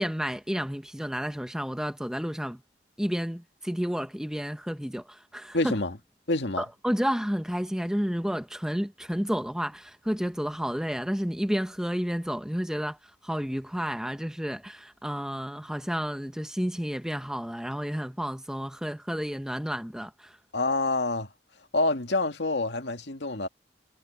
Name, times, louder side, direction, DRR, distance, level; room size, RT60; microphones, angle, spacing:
voice 1, 0.0-2.6 3.0-5.7 6.6-20.4, equal, 5° right, 0.9 m, -31 dB
voice 2, 5.5-5.9 6.3-6.6 20.5-21.3 21.7-23.5, left 2 dB, 80° left, 2.1 m, -27 dB
head